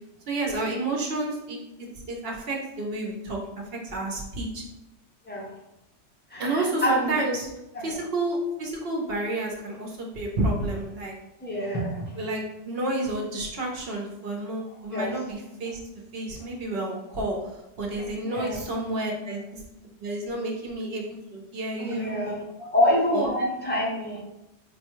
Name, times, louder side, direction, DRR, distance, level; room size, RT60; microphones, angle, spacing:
voice 1, 0.3-1.6 2.1-4.6 6.4-7.5 7.8-11.1 12.2-15.8 16.1-19.6 20.0-22.7 23.1-23.3, right 2 dB, 55° right, 0 dB, 0.9 m, -30 dB
voice 2, 6.3-7.2 7.7-8.0 11.4-12.2 14.9-15.1 18.2-18.6 21.8-22.4 22.7-24.2, equal, 10° left, -3 dB, 0.5 m, -26 dB
4.7 x 2.2 x 3.0 m, 0.89 s
omnidirectional pair, 1.3 m